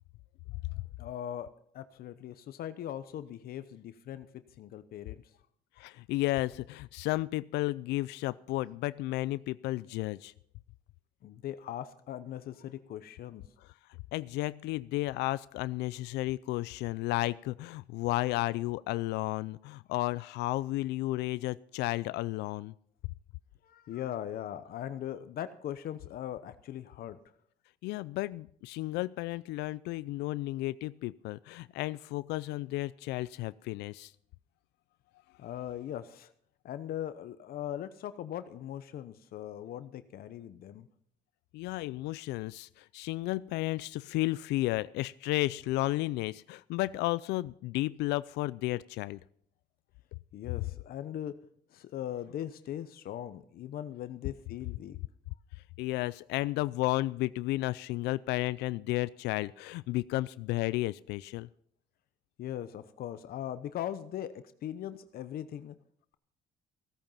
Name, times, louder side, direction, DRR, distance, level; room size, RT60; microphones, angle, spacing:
voice 1, 1.0-5.2 11.2-13.4 23.6-27.2 35.4-36.3 36.6-40.9 50.3-51.4 51.7-55.0 62.4-65.7, left 11 dB, 65° left, 12 dB, 0.9 m, -40 dB
voice 2, 5.8-10.3 14.1-22.7 27.8-34.1 41.5-49.2 55.8-61.5, left 18 dB, 85° left, 18 dB, 0.4 m, -33 dB
16.0 x 9.0 x 5.6 m, 0.65 s
cardioid pair, 110°, 17 cm